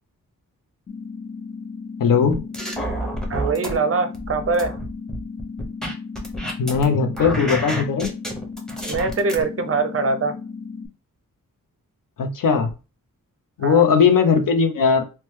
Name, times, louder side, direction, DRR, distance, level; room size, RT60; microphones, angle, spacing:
sound 1, 0.9-10.9, left 5 dB, 25° left, 0.3 m, -35 dB
voice 1, 2.0-2.4 6.6-8.1 12.2-12.7 13.6-15.0, left 6 dB, 75° left, 6 dB, 0.6 m, -18 dB
sound 2, 2.3-3.7 4.1-6.8 7.1-9.4, right 1 dB, ahead, 0.7 m, -29 dB
voice 2, 3.3-4.7 8.9-10.4 13.6-13.8, right 4 dB, 45° right, 8 dB, 0.5 m, -23 dB
2.8 x 2.2 x 3.1 m, 0.31 s
wide cardioid pair, 125°, 33 cm